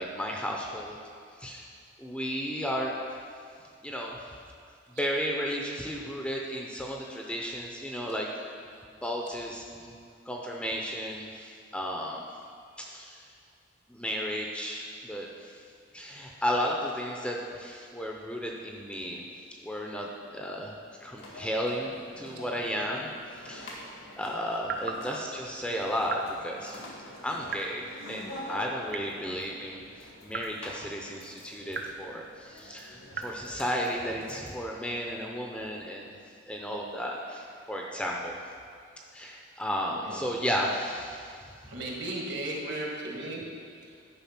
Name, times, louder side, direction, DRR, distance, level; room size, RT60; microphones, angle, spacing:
voice 1, 0.0-1.0 1.4-1.7 2.0-3.0 3.8-4.2 5.0-10.0 10.3-12.3 12.8-13.3 13.9-15.6 15.9-19.2 19.6-20.7 21.0-23.8 24.2-26.8 27.2-36.1 36.5-38.4 39.1-41.4, equal, 5° left, -1 dB, 0.6 m, -34 dB
sound 1, 21.2-34.5, equal, 85° left, 1.9 m, -46 dB
sound 2, 24.6-25.1 26.1-26.3 27.5-27.8 28.9-29.3 30.3-30.6 31.7-32.0 33.1-33.4, right 5 dB, 50° right, 0.6 m, -36 dB
voice 2, 37.1-37.7 39.1-39.2 39.9-40.3 41.6-44.1, right 1 dB, 65° right, -2 dB, 1.8 m, -38 dB
10.5 x 4.9 x 5.9 m, 2.3 s
head